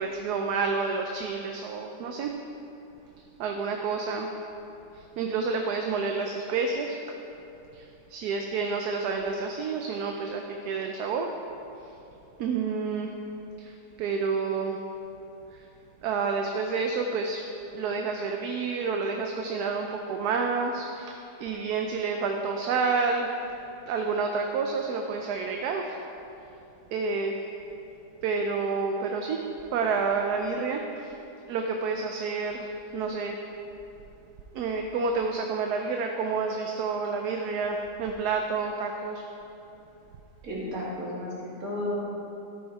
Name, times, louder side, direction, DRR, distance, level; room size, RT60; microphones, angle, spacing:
voice 1, 0.0-2.3 3.4-4.3 5.2-7.0 7.7-7.8 8.1-11.3 12.4-13.1 13.6-13.7 14.0-14.8 15.5-15.6 16.0-17.4 17.7-23.3 23.9-26.0 26.9-27.3 28.2-29.4 29.7-31.1 31.5-33.4 34.5-39.2, right 4 dB, 75° right, 3 dB, 1.2 m, -29 dB
voice 2, 40.4-42.0, left 1 dB, 55° right, -6 dB, 2.7 m, -33 dB
13.0 x 6.3 x 4.6 m, 2.9 s
omnidirectional pair, 1.8 m